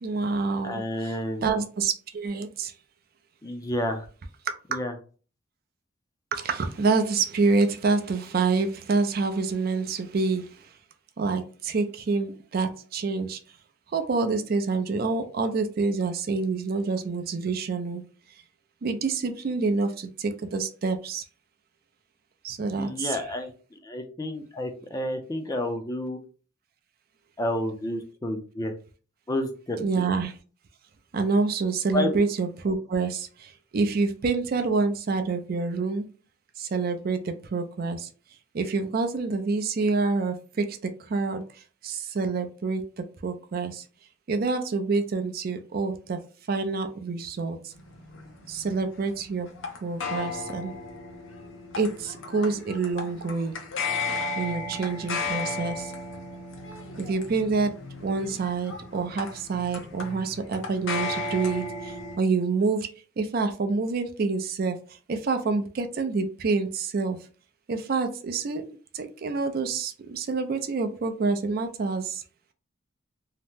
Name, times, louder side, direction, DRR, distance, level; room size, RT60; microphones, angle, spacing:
voice 1, 0.0-2.7 4.5-4.8 6.3-10.7 11.2-13.4 13.9-18.0 18.8-21.2 22.4-23.2 29.8-30.4 31.1-36.0 36.6-38.1 38.5-43.8 44.3-46.2 46.5-47.7 48.5-49.5 49.8-50.7 51.8-53.6 54.4-55.9 57.0-57.7 58.0-62.9 63.2-67.2 67.7-68.7 68.9-72.2, right 4 dB, 50° right, 8 dB, 0.4 m, -27 dB
voice 2, 0.6-1.4 3.4-4.0 4.7-4.9 22.8-26.2 27.4-28.7 29.3-30.0 31.9-32.2, left 1 dB, 20° left, 5 dB, 0.4 m, -30 dB
sound 1, 47.7-62.2, left 3 dB, 85° left, 0.6 m, -35 dB
2.8 x 2.0 x 3.4 m, 0.38 s
head